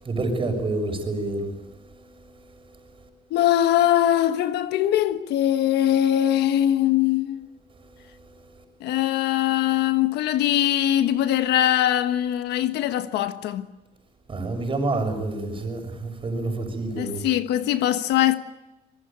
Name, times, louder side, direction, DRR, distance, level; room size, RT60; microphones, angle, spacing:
voice 1, 0.0-1.5 14.3-17.2, right 2 dB, 30° right, 6.6 m, -28 dB
voice 2, 3.3-7.5 8.8-13.7 17.0-18.4, left 12 dB, 80° left, 1.4 m, -22 dB
25.0 x 21.5 x 9.0 m
cardioid pair, 110°, 17 cm